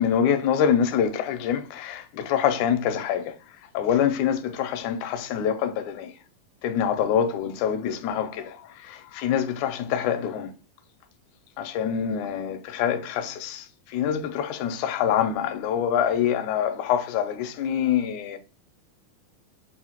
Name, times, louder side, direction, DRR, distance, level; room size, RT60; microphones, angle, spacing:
voice 1, 0.0-3.3 3.7-6.1 6.6-10.5 11.6-13.7 13.9-18.4, left 8 dB, 80° left, 1.8 m, -25 dB
5.7 x 2.5 x 2.8 m
omnidirectional pair, 3.9 m